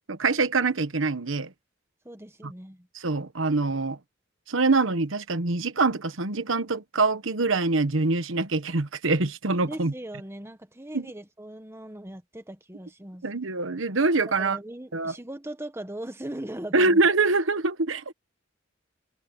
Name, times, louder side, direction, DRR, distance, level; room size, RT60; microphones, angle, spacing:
voice 1, 0.1-1.5 2.4-2.5 2.9-4.0 4.5-9.9 10.9-11.1 13.2-14.6 14.9-15.2 16.7-18.1, right 3 dB, 80° right, 1.2 m, -24 dB
voice 2, 2.0-2.9 9.7-13.2 14.4-17.0, right 1 dB, 15° right, 1.4 m, -39 dB
head